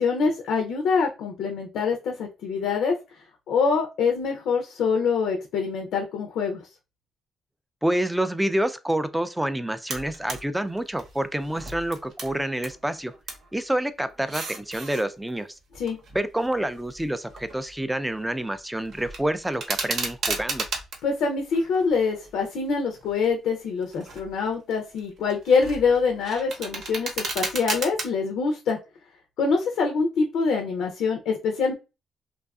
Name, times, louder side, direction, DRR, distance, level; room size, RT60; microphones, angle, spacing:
voice 1, 0.0-2.9 3.5-6.6 15.7-16.0 21.0-28.8 29.4-31.7, left 5 dB, 80° left, 0.5 m, -25 dB
voice 2, 7.8-13.1 13.5-15.5 16.1-20.7, right 1 dB, 5° right, 0.3 m, -27 dB
sound 1, 9.9-10.4 10.8-12.8 13.0-13.5 14.1-15.0 15.7-17.8 18.1-18.5 18.9-21.0 21.5-22.5 23.0-23.3 23.8-24.3 24.7-28.1, right 3 dB, 65° right, 0.8 m, -34 dB
2.6 x 2.3 x 2.3 m
cardioid pair, 90°, 0 cm